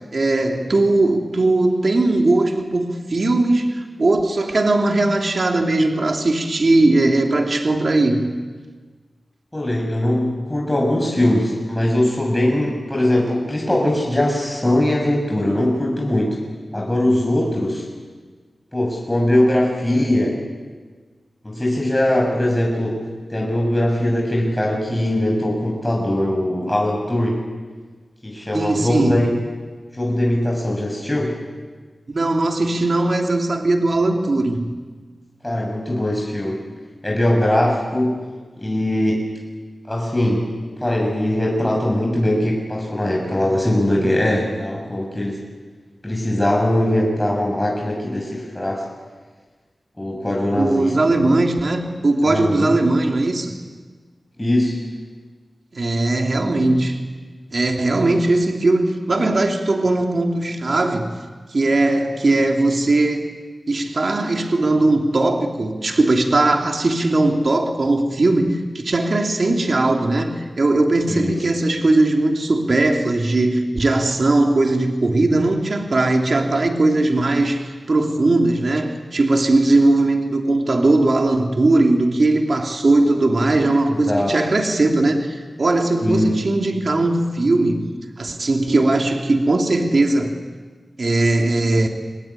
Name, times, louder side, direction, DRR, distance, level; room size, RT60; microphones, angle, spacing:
voice 1, 0.1-8.3 28.5-29.2 32.1-34.7 50.5-53.6 55.7-57.0 57.5-61.1 61.5-63.3 63.7-90.3 91.0-91.9, right 2 dB, 60° right, 3 dB, 2.9 m, -19 dB
voice 2, 9.5-16.4 16.7-17.8 18.7-20.4 21.4-23.0 23.3-27.4 28.2-29.3 29.9-31.4 35.4-36.6 37.0-38.2 38.6-39.3 39.9-40.5 40.8-45.4 46.0-48.8 50.0-51.3 52.2-52.8 54.4-54.8 71.1-71.3 83.9-84.4 86.0-86.4, left 1 dB, 15° left, -2 dB, 6.7 m, -21 dB
26.0 x 19.5 x 9.8 m, 1.4 s
cardioid pair, 55°, 0 cm